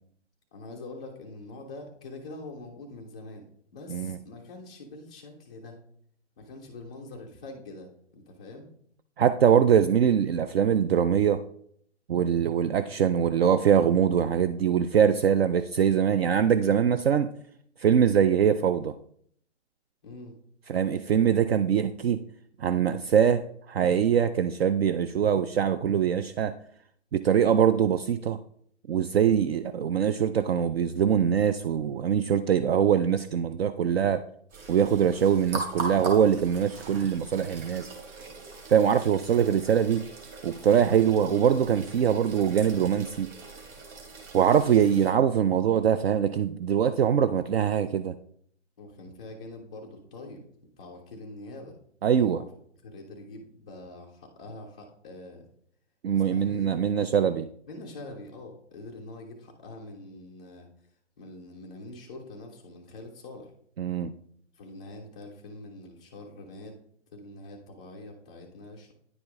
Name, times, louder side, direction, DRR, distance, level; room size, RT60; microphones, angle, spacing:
voice 1, 0.5-3.4 3.7-5.8 6.4-8.7 20.0-20.3 44.7-44.8 48.8-50.4 50.8-51.7 52.2-52.5 52.8-55.5 56.3-57.3 57.7-60.7 61.2-63.5 64.5-66.7 67.1-68.9, left 2 dB, 5° left, -2 dB, 0.3 m, -44 dB
voice 2, 9.2-11.4 12.1-17.3 17.8-18.9 20.7-22.2 22.6-26.5 27.1-28.4 28.9-34.2 34.7-37.9 38.7-40.0 40.4-43.3 44.3-48.2 52.0-52.4 56.0-57.5 63.8-64.1, right 8 dB, 60° right, 11 dB, 0.5 m, -23 dB
sound 1, 34.5-45.1, right 2 dB, 25° right, 2.1 m, -40 dB
9.7 x 5.0 x 3.6 m, 0.65 s
hypercardioid pair, 140°, 36 cm